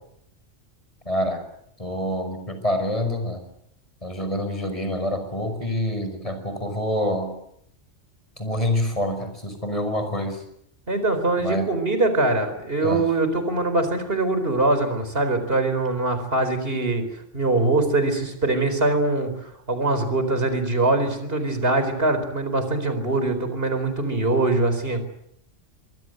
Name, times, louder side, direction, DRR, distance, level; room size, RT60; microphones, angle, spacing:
voice 1, 1.1-1.4 1.8-3.4 4.0-7.3 8.4-10.4 11.4-11.7 12.8-13.0, left 1 dB, 30° left, 7 dB, 5.7 m, -26 dB
voice 2, 10.9-17.0 17.3-25.0, right 2 dB, 50° right, 9 dB, 4.6 m, -23 dB
24.5 x 23.0 x 8.0 m, 0.72 s
omnidirectional pair, 1.2 m